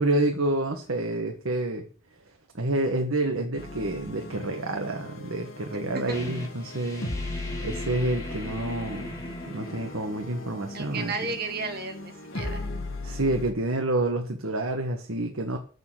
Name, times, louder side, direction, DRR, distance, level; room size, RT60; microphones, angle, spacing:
voice 1, 0.0-1.8 2.5-7.1 7.6-11.1 13.0-15.6, right 2 dB, 80° right, 4 dB, 1.5 m, -28 dB
sound 1, 3.6-13.5, left 2 dB, 70° left, 2.1 m, -38 dB
sound 2, 6.1-11.5, left 1 dB, 15° left, 2.6 m, -40 dB
voice 2, 10.7-12.6, right 3 dB, 45° right, 5 dB, 2.0 m, -33 dB
8.2 x 7.0 x 8.5 m, 0.42 s
head